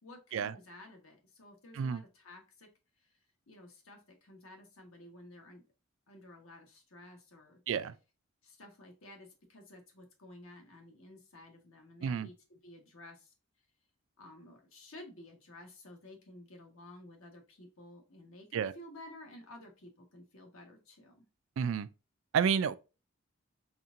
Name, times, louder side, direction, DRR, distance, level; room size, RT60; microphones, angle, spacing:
voice 1, 0.0-2.7 3.0-3.1 3.5-5.6 6.1-7.6 8.4-13.3 14.2-21.2, left 1 dB, 70° left, 1.3 m, -53 dB
voice 2, 21.6-21.9 22.3-22.7, right 7 dB, 65° right, 0.3 m, -30 dB
4.2 x 3.6 x 2.5 m
head